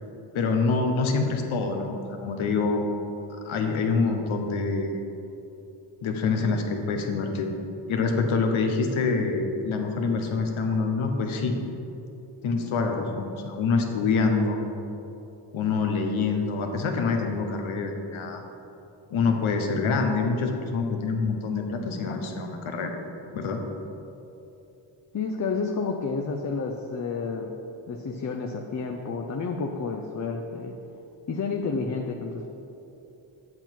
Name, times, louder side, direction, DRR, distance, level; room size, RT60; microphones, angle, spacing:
voice 1, 0.3-2.9 3.4-5.0 6.0-7.5 7.9-11.6 12.4-14.6 15.5-18.4 19.1-22.9 23.3-23.6, left 4 dB, 90° left, 4 dB, 0.9 m, -26 dB
voice 2, 25.1-27.6 27.9-30.7 31.3-32.5, left 4 dB, 40° left, 2 dB, 0.6 m, -30 dB
7.8 x 5.7 x 4.5 m, 2.9 s
cardioid pair, 60°, 47 cm